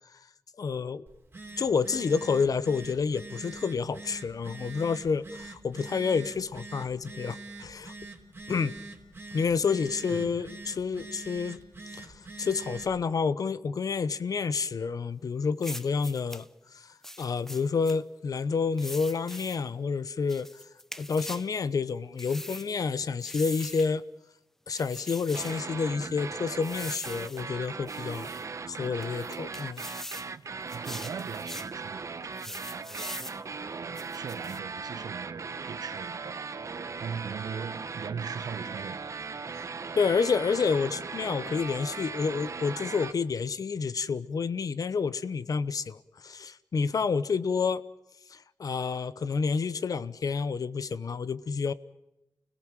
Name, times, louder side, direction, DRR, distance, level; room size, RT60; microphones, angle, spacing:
voice 1, 0.6-1.0 1.6-7.9 8.5-8.7 9.3-11.6 11.9-16.5 16.7-16.9 17.2-20.5 21.0-24.0 24.7-28.3 28.7-29.9 40.0-46.0 46.2-47.8 48.3-51.7, left 5 dB, 70° left, 0.9 m, -29 dB
Telephone, 1.1-13.0, right 3 dB, 35° right, 3.4 m, -45 dB
voice 2, 10.1-10.5 30.4-30.5 30.7-36.6 37.0-39.0, right 6 dB, 90° right, 1.0 m, -40 dB
sound 1, 15.6-16.5 17.0-18.0 18.8-19.6 20.3-21.5 22.2-22.7 23.2-23.9 24.7-25.6 26.6-27.4 27.9-28.4 29.0-30.3 30.7-31.7 32.4-33.4 34.0-34.6, equal, 5° left, 0.7 m, -42 dB
sound 2, 25.3-43.1, right 4 dB, 55° right, 0.9 m, -38 dB
30.0 x 17.5 x 7.4 m
wide cardioid pair, 105°, 6 cm